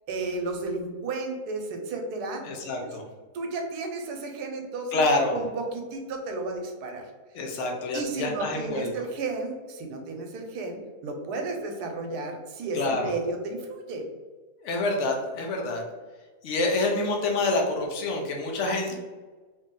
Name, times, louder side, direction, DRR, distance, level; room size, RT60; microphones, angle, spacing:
voice 1, 0.1-2.4 3.3-5.0 5.3-7.0 7.9-14.0 18.7-18.9, right 3 dB, 85° right, 3 dB, 1.2 m, -33 dB
voice 2, 2.4-3.0 4.9-5.3 7.3-8.9 12.7-13.1 14.6-15.8 16.4-18.9, left 2 dB, 55° left, 1 dB, 0.9 m, -27 dB
3.0 x 2.7 x 3.6 m, 1.3 s
omnidirectional pair, 1.7 m